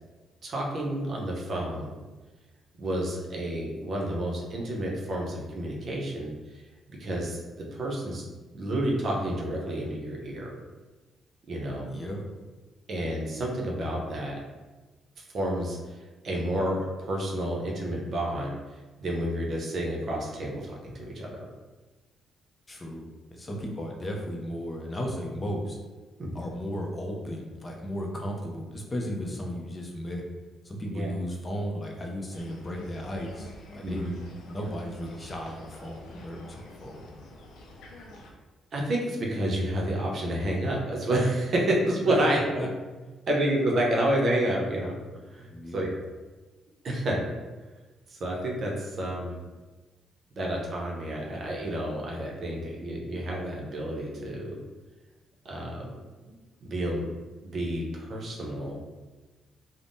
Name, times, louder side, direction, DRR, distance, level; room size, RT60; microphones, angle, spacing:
voice 1, 0.4-1.9 2.8-6.6 7.0-10.5 11.5-11.9 12.9-14.4 15.2-18.6 19.0-21.4 26.2-26.3 30.9-31.1 33.8-34.1 38.7-42.4 43.3-45.0 45.3-45.9 46.8-47.2 48.1-49.4 50.4-54.6 55.4-55.9 56.3-56.4 56.6-57.1 57.4-58.8, right 1 dB, 55° right, -2 dB, 0.7 m, -30 dB
voice 2, 11.9-12.2 22.7-25.8 26.3-30.2 30.6-34.1 34.5-37.0 42.5-42.7 45.5-45.9, equal, 25° left, 0 dB, 0.5 m, -35 dB
sound 1, 32.3-38.3, left 1 dB, 85° left, 0.5 m, -47 dB
3.4 x 2.1 x 2.6 m, 1.2 s
cardioid pair, 90°, 0 cm